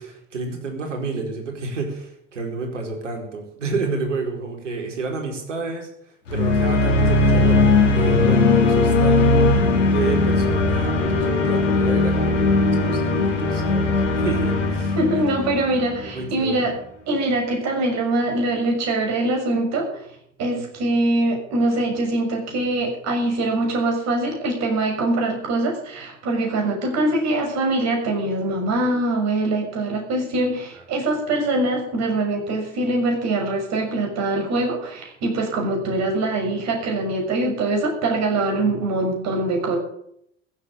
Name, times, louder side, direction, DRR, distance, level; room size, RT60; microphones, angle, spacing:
voice 1, 0.0-9.2 9.9-15.2 16.0-16.7 38.7-38.8, right 4 dB, 75° right, 2 dB, 4.6 m, -30 dB
sound 1, 6.3-16.3, left 3 dB, 80° left, 3.6 m, -19 dB
voice 2, 15.0-16.7 17.1-20.0 20.4-39.8, right 2 dB, 45° right, 2 dB, 6.5 m, -23 dB
15.0 x 8.2 x 10.0 m, 0.73 s
figure-of-eight pair, 75°, 37 cm